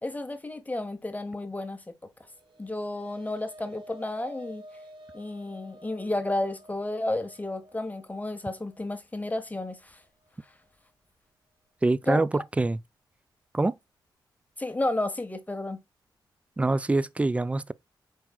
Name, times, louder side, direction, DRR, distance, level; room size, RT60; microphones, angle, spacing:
voice 1, 0.0-1.8 2.6-4.6 5.1-10.0 12.1-12.4 14.6-15.8, left 2 dB, 20° left, 0.9 m, -32 dB
sound 1, 2.1-10.7, equal, 75° right, 1.2 m, -50 dB
voice 2, 11.8-12.8 13.5-13.7 16.6-17.7, right 2 dB, 15° right, 0.3 m, -25 dB
4.6 x 4.5 x 2.3 m
cardioid pair, 65°, 8 cm